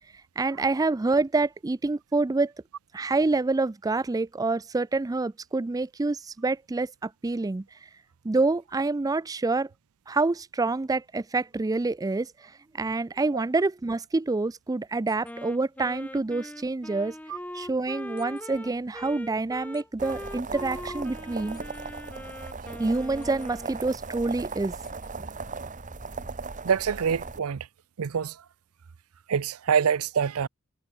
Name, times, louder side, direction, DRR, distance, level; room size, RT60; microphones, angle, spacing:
voice 1, 0.4-2.5 2.9-7.6 8.2-9.7 10.1-17.1 17.5-21.6 22.8-24.7, right 3 dB, 15° right, 0.4 m, -27 dB
sound 1, 15.1-15.3 18.2-18.4 19.7-19.8 21.5-21.8 23.2-23.5 24.8-25.1, left 12 dB, 40° left, 2.9 m, -56 dB
Wind instrument woodwind instrument, 15.2-23.9, left 1 dB, 5° left, 1.2 m, -41 dB
sound 2, 20.0-27.4, right 4 dB, 35° right, 1.4 m, -38 dB
voice 2, 26.6-27.7 28.0-28.4 29.3-30.5, right 7 dB, 80° right, 0.5 m, -26 dB
head